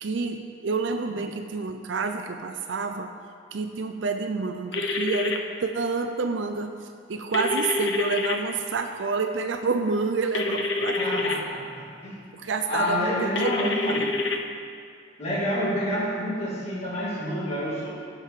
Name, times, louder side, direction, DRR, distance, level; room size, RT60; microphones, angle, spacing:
voice 1, 0.0-3.1 3.5-11.5 12.3-14.1, right 4 dB, 85° right, 5 dB, 0.5 m, -29 dB
sound 1, 4.7-5.4 7.3-8.4 10.3-11.4 13.4-14.4, left 3 dB, 70° left, 0.7 m, -27 dB
voice 2, 11.0-12.2 12.7-14.1 15.2-17.9, equal, 35° left, -7 dB, 2.3 m, -28 dB
15.5 x 6.1 x 3.7 m, 2.2 s
head